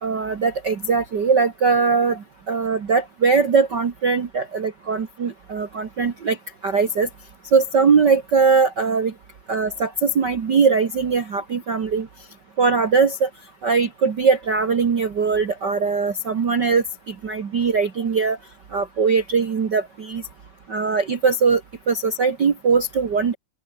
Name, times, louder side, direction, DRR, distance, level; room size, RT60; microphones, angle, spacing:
voice 1, 0.0-6.4 6.6-7.1 7.5-9.1 9.5-12.1 12.6-13.3 13.6-18.4 18.7-20.2 20.7-21.6 21.9-23.3, right 5 dB, 40° right, 1.8 m, -20 dB
open air
omnidirectional pair, 3.7 m